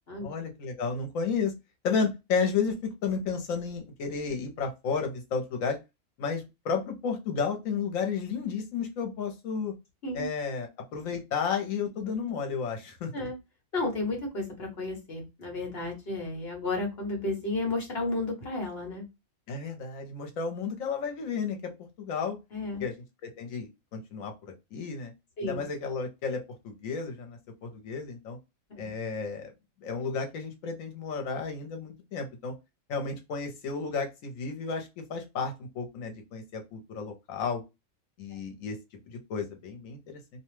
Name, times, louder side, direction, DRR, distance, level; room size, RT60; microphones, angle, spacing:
voice 1, 0.2-1.5 1.8-5.8 6.2-9.7 10.1-13.1 19.5-21.7 22.0-22.4 22.8-22.9 23.2-24.3 24.7-25.1 25.4-28.4 28.8-29.5 29.8-32.5 32.9-37.6 38.2-38.8 39.1-40.2, left 5 dB, 75° left, 4 dB, 1.2 m, -32 dB
voice 2, 13.7-19.0 22.5-22.9 25.4-25.7 28.8-28.9 38.3-38.4, left 2 dB, 50° left, 1 dB, 1.2 m, -32 dB
2.7 x 2.2 x 3.1 m, 0.24 s
omnidirectional pair, 1.4 m